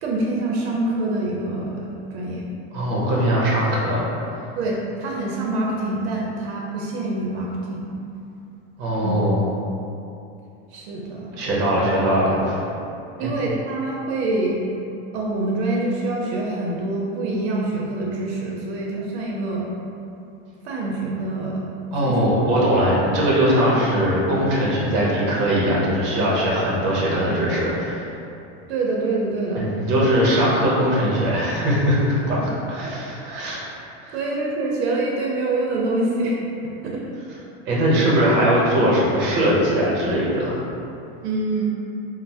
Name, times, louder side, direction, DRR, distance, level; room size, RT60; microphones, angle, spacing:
voice 1, 0.0-2.5 4.6-7.9 9.0-9.2 10.7-11.3 13.2-14.6 15.1-19.7 20.6-21.6 22.0-22.3 28.7-29.6 30.0-30.1 32.4-32.5 32.8-32.9 34.1-36.4 36.6-37.0 41.2-41.7, right 2 dB, 75° right, -2 dB, 0.5 m, -25 dB
voice 2, 2.7-4.1 8.8-9.4 11.3-12.6 13.2-13.3 21.9-28.1 29.5-32.4 32.7-33.6 34.0-34.2 37.7-40.6, equal, 35° right, -5 dB, 0.7 m, -20 dB
3.0 x 2.0 x 2.7 m, 2.7 s
supercardioid pair, 160°, 32 cm